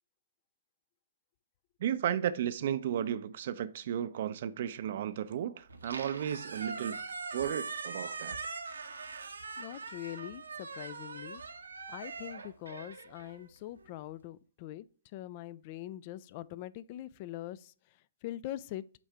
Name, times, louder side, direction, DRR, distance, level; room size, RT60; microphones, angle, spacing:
voice 1, 1.8-7.0 7.3-8.4, right 10 dB, 50° right, 0.5 m, -34 dB
Squeak, 5.7-13.9, right 4 dB, 80° right, 0.9 m, -42 dB
voice 2, 9.6-11.4 11.9-14.9 15.1-19.0, left 14 dB, 40° left, 0.3 m, -43 dB
8.1 x 2.7 x 4.5 m
figure-of-eight pair, 125°, 0 cm